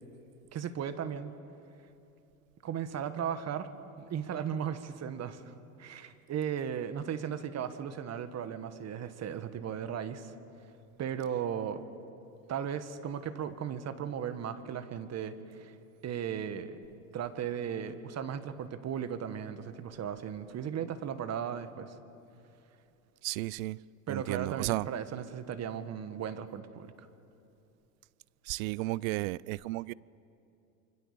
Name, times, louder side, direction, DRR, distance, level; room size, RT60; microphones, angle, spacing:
voice 1, 0.5-1.3 2.6-3.7 4.0-5.5 5.8-10.3 11.0-11.8 12.5-15.7 16.0-16.8 17.1-21.9 24.1-26.9, right 8 dB, 40° right, 1.6 m, -36 dB
voice 2, 23.2-23.8 24.1-24.9 28.4-29.9, right 20 dB, 70° right, 0.6 m, -33 dB
28.0 x 24.5 x 6.9 m
hypercardioid pair, 95°, 42 cm